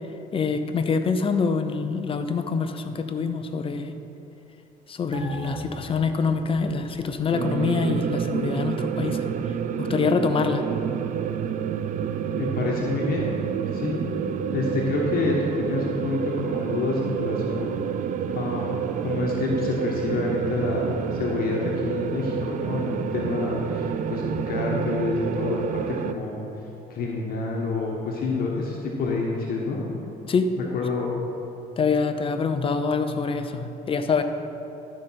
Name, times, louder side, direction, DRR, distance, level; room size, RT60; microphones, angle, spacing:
voice 1, 0.3-3.9 4.9-10.6 30.3-30.5 31.8-34.2, left 5 dB, 30° left, 8 dB, 0.7 m, -25 dB
sound 1, 5.1-8.0 8.4-8.5, right 2 dB, 25° right, 1.4 m, -39 dB
sound 2, 7.3-26.1, right 7 dB, 50° right, 0.4 m, -28 dB
voice 2, 12.4-13.3 13.7-14.0 14.5-17.7 18.3-18.7 19.0-26.4 26.9-29.8 30.7-31.1, left 3 dB, 60° left, -2 dB, 1.4 m, -28 dB
12.0 x 5.2 x 5.8 m, 2.9 s
cardioid pair, 110°, 17 cm